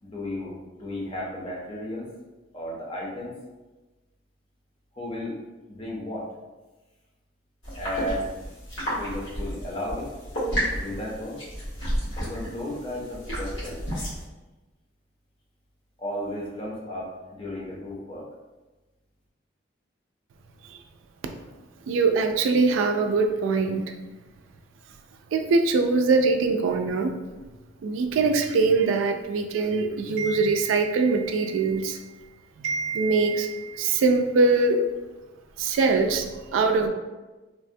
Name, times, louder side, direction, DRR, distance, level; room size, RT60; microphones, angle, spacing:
voice 1, 0.0-2.1 2.5-3.3 4.9-5.4 5.7-6.3 7.8-8.3 8.9-10.1 10.7-11.4 12.2-13.8 16.0-18.2, left 1 dB, 30° left, -4 dB, 0.6 m, -34 dB
sound 1, 7.6-14.2, equal, 85° left, 1.4 m, -32 dB
voice 2, 21.9-23.9 25.3-27.2 27.8-32.1 32.6-34.8 35.6-36.3 36.5-36.9, right 3 dB, 90° right, 6 dB, 0.3 m, -23 dB
3.2 x 2.1 x 2.6 m, 1.2 s
head